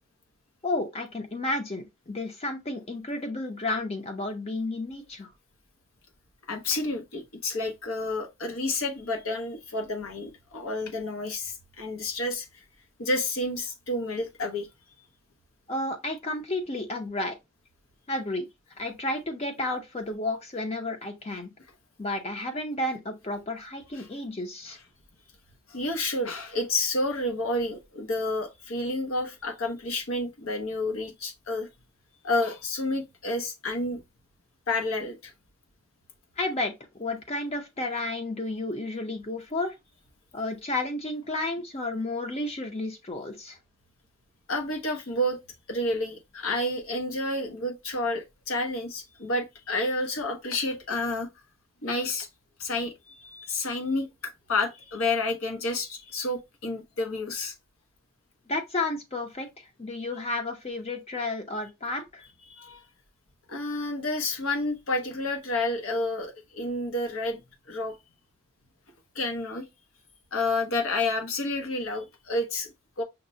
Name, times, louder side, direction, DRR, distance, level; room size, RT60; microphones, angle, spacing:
voice 1, 0.6-5.3 15.7-17.4 18.1-18.5 18.8-21.5 22.0-24.8 36.4-39.7 40.3-43.6 58.5-62.2, left 2 dB, 30° left, 0.6 m, -32 dB
voice 2, 6.5-12.6 13.0-14.7 24.0-24.1 25.7-31.7 32.2-34.0 34.7-35.3 44.5-45.4 45.7-51.3 51.8-52.3 52.6-57.5 62.5-62.8 63.5-67.4 67.7-68.0 69.1-69.6 70.3-73.0, left 2 dB, 80° left, 0.9 m, -30 dB
5.8 x 2.1 x 2.6 m
head